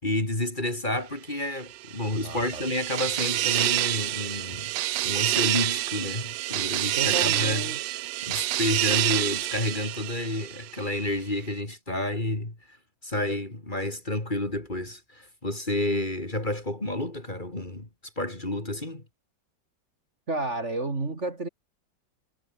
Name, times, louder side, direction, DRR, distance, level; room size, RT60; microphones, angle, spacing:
voice 1, 0.0-4.7 5.0-7.6 8.3-12.6 13.0-17.9 18.2-19.0, left 1 dB, 25° left, 3.8 m, -30 dB
sound 1, 1.7-10.9, right 16 dB, 85° right, 1.3 m, -28 dB
voice 2, 2.2-2.6 6.9-7.8 20.3-21.5, right 2 dB, 40° right, 3.1 m, -31 dB
omnidirectional pair, 1.9 m